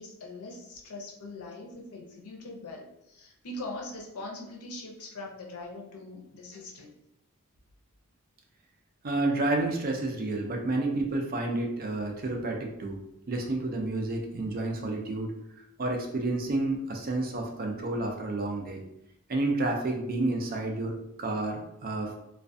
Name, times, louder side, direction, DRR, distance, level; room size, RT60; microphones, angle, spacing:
voice 1, 0.0-6.9 10.4-10.5, left 2 dB, 85° left, 0 dB, 0.6 m, -42 dB
voice 2, 9.0-13.0 13.3-15.3 15.8-18.8 19.3-22.1, right 2 dB, 40° right, 2 dB, 0.4 m, -30 dB
2.3 x 2.2 x 2.5 m, 0.83 s
head